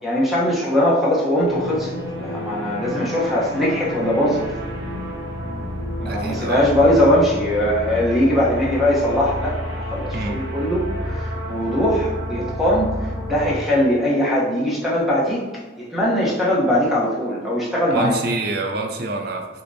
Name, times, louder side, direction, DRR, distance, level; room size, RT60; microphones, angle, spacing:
voice 1, 0.0-4.4 6.0-18.1, left 1 dB, ahead, -6 dB, 0.8 m, -20 dB
sound 1, 1.5-13.6, equal, 70° right, 0.8 m, -29 dB
voice 2, 6.0-6.7 10.1-10.4 17.9-19.5, right 3 dB, 50° right, 2 dB, 0.5 m, -26 dB
6.4 x 2.2 x 2.6 m, 1.3 s
head